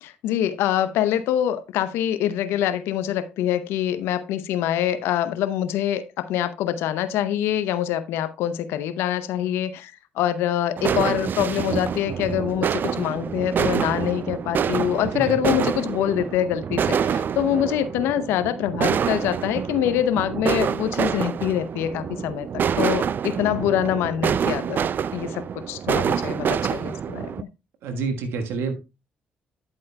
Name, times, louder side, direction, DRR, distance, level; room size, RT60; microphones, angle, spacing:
voice 1, 0.0-24.8 25.1-27.5, left 11 dB, 80° left, 0.7 m, -25 dB
sound 1, 10.8-27.4, right 7 dB, 55° right, 0.3 m, -26 dB
voice 2, 27.8-28.7, right 4 dB, 75° right, 1.4 m, -27 dB
9.9 x 8.5 x 2.2 m
hypercardioid pair, 50°, 4 cm